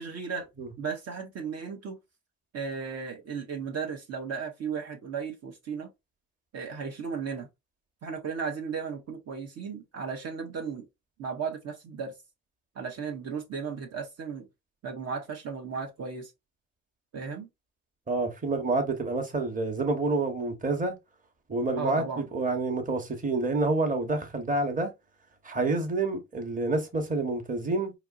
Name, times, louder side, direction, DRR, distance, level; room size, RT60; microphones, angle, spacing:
voice 1, 0.0-0.5 0.8-1.9 2.5-5.9 6.5-7.5 8.0-10.9 11.2-12.1 12.8-14.4 14.8-16.3 17.1-17.5 21.8-22.3, right 6 dB, 55° right, 0.9 m, -35 dB
voice 2, 18.1-21.0 21.5-24.9 25.4-27.9, right 3 dB, 25° right, 1.1 m, -28 dB
4.2 x 2.9 x 2.5 m
cardioid pair, 90°, 30 cm